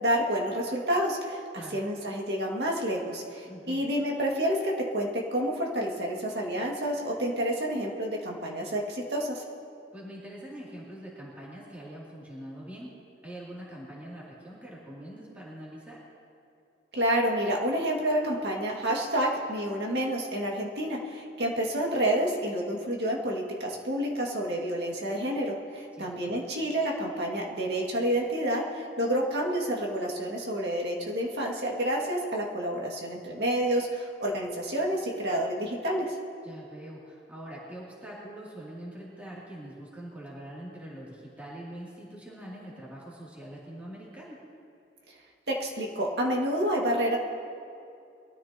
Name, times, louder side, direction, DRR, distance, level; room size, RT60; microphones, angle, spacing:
voice 1, 0.0-9.4 16.9-36.1 45.5-47.2, equal, 65° right, -2 dB, 2.1 m, -29 dB
voice 2, 3.4-3.8 9.9-12.9 13.2-16.0 25.9-26.3 36.4-44.4, right 1 dB, 10° right, -7 dB, 2.8 m, -43 dB
22.5 x 13.5 x 3.0 m, 2.5 s
head